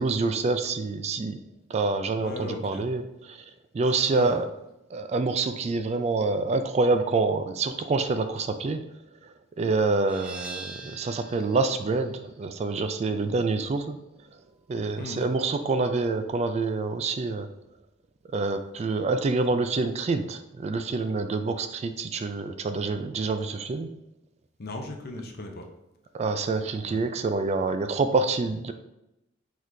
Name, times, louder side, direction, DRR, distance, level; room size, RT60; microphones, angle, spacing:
voice 1, 0.0-1.4 1.7-3.4 3.7-4.5 4.9-8.8 9.6-14.0 14.7-17.5 18.3-23.9 26.1-28.7, right 3 dB, 35° right, 8 dB, 0.3 m, -27 dB
voice 2, 2.2-2.8 4.1-4.4 15.0-15.3 24.6-25.7 26.8-27.1, left 2 dB, 55° left, 3 dB, 0.7 m, -37 dB
sound 1, 10.1-15.5, right 3 dB, 5° right, 0.7 m, -45 dB
4.7 x 4.0 x 2.7 m, 0.88 s
head